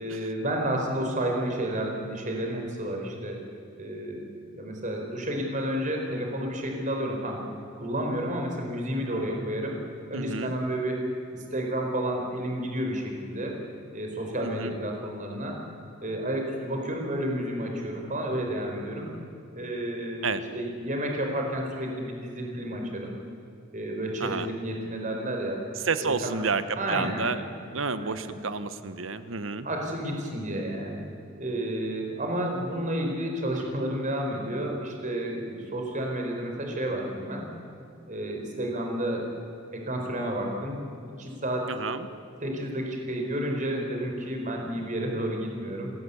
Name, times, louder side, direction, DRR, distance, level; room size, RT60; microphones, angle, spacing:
voice 1, 0.0-3.4 3.8-4.2 4.5-7.4 7.8-9.8 10.1-13.6 13.9-15.6 16.0-19.1 19.5-23.1 23.7-25.6 26.0-26.5 26.8-27.2 28.0-28.4 29.6-31.0 31.4-37.5 38.1-39.3 39.7-40.8 41.2-41.8 42.4-45.9, right 1 dB, 40° right, 1 dB, 4.5 m, -31 dB
voice 2, 10.1-10.5 14.4-14.7 20.2-20.4 24.2-24.5 25.8-26.6 26.9-27.4 27.7-29.7 41.7-42.1, right 4 dB, 85° right, 12 dB, 1.2 m, -30 dB
28.5 x 13.5 x 8.4 m, 2.6 s
head